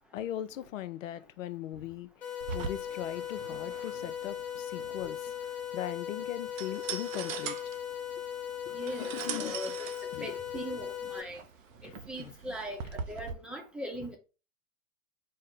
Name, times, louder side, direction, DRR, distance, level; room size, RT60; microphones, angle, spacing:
voice 1, 0.0-7.7 8.7-9.6 10.1-10.4 11.8-12.3, left 12 dB, 75° left, 0.5 m, -40 dB
sound 1, 2.2-11.2, left 9 dB, 20° left, 1.2 m, -38 dB
sound 2, 2.4-13.3, right 6 dB, 80° right, 0.6 m, -42 dB
voice 2, 8.7-9.8 10.2-11.4 11.8-14.2, equal, 5° right, 0.7 m, -40 dB
4.3 x 2.0 x 3.7 m
hypercardioid pair, 110°, 39 cm